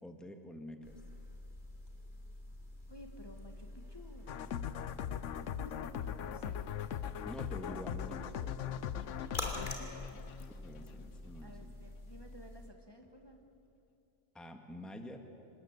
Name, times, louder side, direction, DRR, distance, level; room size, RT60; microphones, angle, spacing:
voice 1, 0.0-0.9 7.2-9.7 10.5-11.7 14.3-15.2, equal, ahead, 5 dB, 1.6 m, -48 dB
sound 1, 0.8-12.7, left 1 dB, 40° left, 3.1 m, -47 dB
voice 2, 2.9-4.3 5.6-6.6 9.4-10.2 11.4-13.4, left 1 dB, 20° left, 3 dB, 1.6 m, -54 dB
sound 2, 4.3-11.0, left 9 dB, 90° left, 1.1 m, -40 dB
26.5 x 20.0 x 8.1 m, 2.8 s
omnidirectional pair, 1.2 m